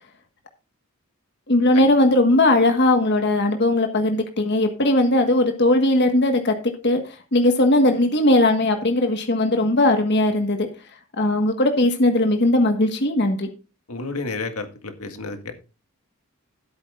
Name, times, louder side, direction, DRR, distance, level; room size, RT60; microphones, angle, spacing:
voice 1, 1.5-6.5 6.8-10.7 11.2-13.5, left 1 dB, 50° left, 5 dB, 1.5 m, -19 dB
voice 2, 13.9-15.5, left 3 dB, 85° left, 6 dB, 1.9 m, -31 dB
15.5 x 8.6 x 2.5 m, 0.32 s
head